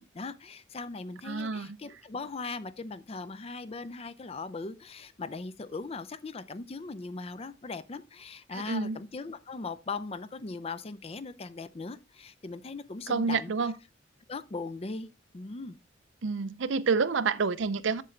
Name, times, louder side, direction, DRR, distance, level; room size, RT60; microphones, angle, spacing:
voice 1, 0.0-13.5 14.3-15.1 15.3-15.8, left 3 dB, 30° left, 0.5 m, -39 dB
voice 2, 1.2-1.8 8.5-9.0 13.1-13.7 16.2-18.0, right 4 dB, 70° right, 0.5 m, -28 dB
7.5 x 6.8 x 3.2 m
head